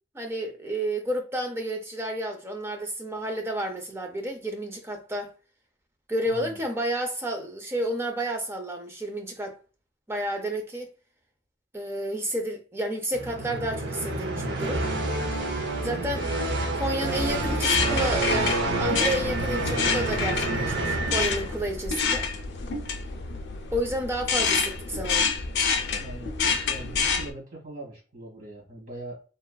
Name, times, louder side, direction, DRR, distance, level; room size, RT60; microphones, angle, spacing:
voice 1, 0.1-5.3 6.1-9.6 10.1-10.9 11.7-14.8 15.8-16.2 16.7-22.3 23.7-25.3, right 1 dB, 15° right, 0.4 m, -31 dB
voice 2, 6.3-6.6 15.8-16.2 25.9-29.2, right 2 dB, 50° right, 1.3 m, -41 dB
sound 1, 13.1-21.8, right 2 dB, 80° right, 0.6 m, -28 dB
sound 2, 17.2-27.3, left 5 dB, 85° left, 0.5 m, -28 dB
3.0 x 2.4 x 2.2 m
head